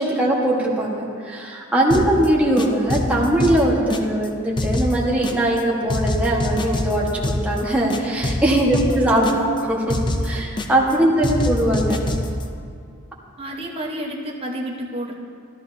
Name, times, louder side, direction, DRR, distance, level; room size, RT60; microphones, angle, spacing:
voice 1, 0.0-9.8 10.2-12.0, right 1 dB, 5° right, -4 dB, 1.4 m, -20 dB
sound 1, 1.9-2.3 2.6-4.3 4.6-5.6 5.9-7.6 7.9-9.6 9.9-10.9 11.2-12.4, left 1 dB, 20° left, 0.5 m, -25 dB
voice 2, 1.9-2.3 8.7-9.6 13.4-15.1, right 1 dB, 25° right, -3 dB, 1.0 m, -31 dB
13.0 x 13.0 x 2.7 m, 2.3 s
head